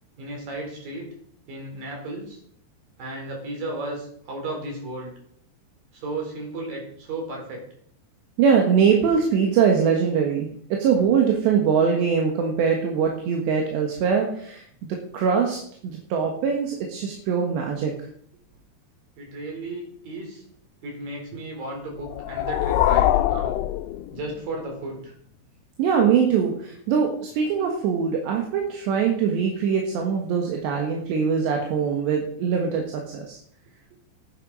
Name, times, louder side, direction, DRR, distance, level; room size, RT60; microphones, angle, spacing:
voice 1, 0.2-1.1 1.5-2.4 3.0-5.1 5.9-7.6 19.2-20.4 20.8-23.6 24.1-25.1, right 2 dB, 50° right, 1 dB, 5.8 m, -34 dB
voice 2, 8.4-14.6 15.1-17.9 25.8-33.4, right 6 dB, 75° right, 1 dB, 3.7 m, -22 dB
sound 1, 22.0-24.6, left 13 dB, 85° left, 3.0 m, -23 dB
15.0 x 9.9 x 5.5 m, 0.64 s
omnidirectional pair, 5.1 m